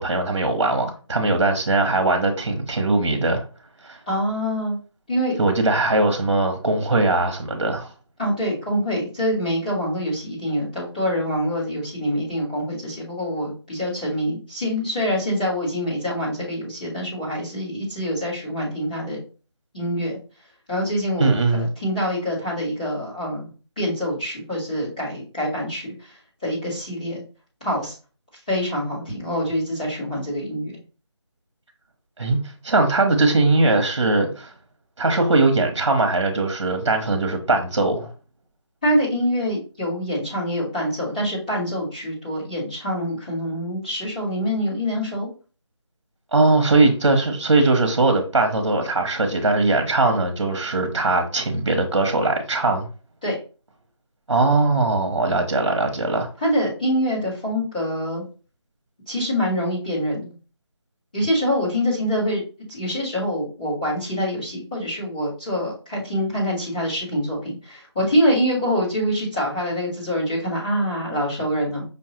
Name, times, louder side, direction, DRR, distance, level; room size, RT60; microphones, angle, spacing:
voice 1, 0.0-3.4 3.8-4.0 5.4-7.9 21.2-21.7 32.2-32.4 32.6-34.5 35.0-38.1 46.3-52.9 54.3-56.3, right 2 dB, 70° right, 0.9 m, -20 dB
voice 2, 4.1-4.8 5.1-5.3 8.2-19.2 19.7-20.2 20.7-23.5 23.8-27.2 27.6-27.9 28.5-30.8 38.8-45.3 53.2-53.3 56.4-58.2 59.1-60.3 61.1-62.4 62.7-71.8, equal, 15° left, 1.3 m, -25 dB
5.4 x 2.3 x 2.8 m
figure-of-eight pair, 180°, 15 cm